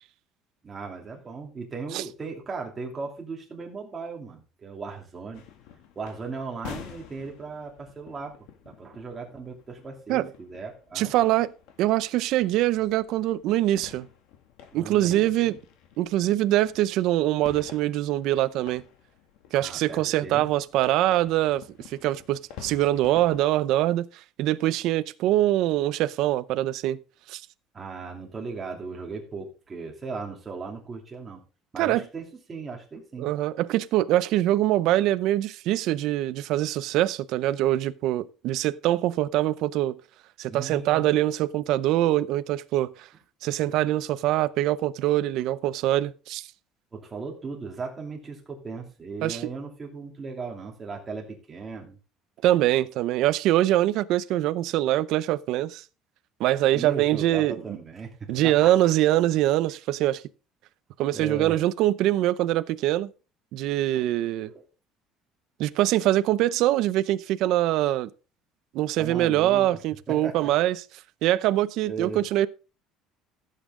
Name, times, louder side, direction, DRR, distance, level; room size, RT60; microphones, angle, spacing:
voice 1, 0.6-5.4 5.9-8.4 8.6-11.1 14.7-15.6 19.6-20.5 27.7-31.4 31.7-33.3 40.5-41.0 46.9-52.0 56.7-58.7 61.1-61.6 64.0-64.1 64.4-64.6 69.0-69.8 70.1-70.5 71.8-72.2, right 4 dB, 15° right, 2.9 m, -37 dB
sound 1, 5.3-23.4, left 9 dB, 70° left, 2.3 m, -48 dB
voice 2, 10.9-11.5 11.8-14.1 14.7-15.6 16.0-18.8 19.5-24.1 24.4-27.0 27.3-27.4 31.8-32.0 33.2-40.0 40.4-43.1 43.4-46.5 49.2-49.4 52.4-55.8 56.4-57.5 58.3-60.2 61.0-63.1 63.5-64.5 65.6-68.1 68.7-70.8 71.2-72.5, right 14 dB, 55° right, 0.6 m, -23 dB
15.0 x 8.3 x 3.7 m
cardioid pair, 175°, 0 cm